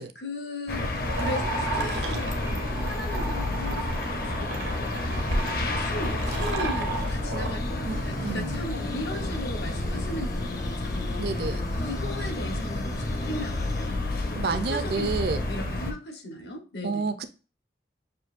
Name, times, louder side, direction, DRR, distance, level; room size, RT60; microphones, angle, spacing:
voice 1, 0.0-5.3 5.8-14.0 14.3-17.1, left 1 dB, 75° left, 1.1 m, -38 dB
sound 1, 0.7-15.9, left 2 dB, 50° left, 0.7 m, -30 dB
sound 2, 1.0-7.6, right 3 dB, 80° right, 0.8 m, -35 dB
sound 3, 2.4-3.8 4.1-4.2 7.1-13.9, left 1 dB, 20° left, 0.4 m, -42 dB
voice 2, 7.8-8.6 11.2-11.7 14.4-15.4 16.8-17.3, right 4 dB, 60° right, 0.5 m, -30 dB
6.3 x 2.6 x 2.5 m
head